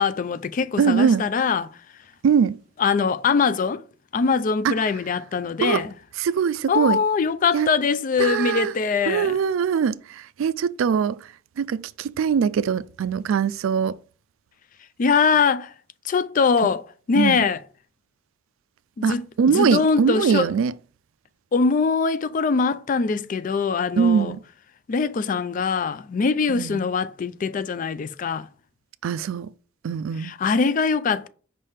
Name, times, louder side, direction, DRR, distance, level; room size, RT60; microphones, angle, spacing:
voice 1, 0.0-1.8 2.8-3.8 4.1-5.9 6.7-9.4 15.0-15.7 16.0-17.6 19.0-19.2 19.5-20.5 21.5-24.4 24.9-28.5 30.2-31.3, left 5 dB, 40° left, 0.3 m, -22 dB
voice 2, 0.8-1.2 2.2-2.6 4.6-4.7 5.6-5.8 6.2-7.0 7.5-7.7 8.2-8.7 9.0-11.2 11.6-14.0 17.2-17.5 19.0-20.7 24.0-24.4 26.5-26.8 29.0-29.5 29.8-30.3, right 7 dB, 75° right, 0.3 m, -22 dB
5.4 x 3.3 x 5.6 m
head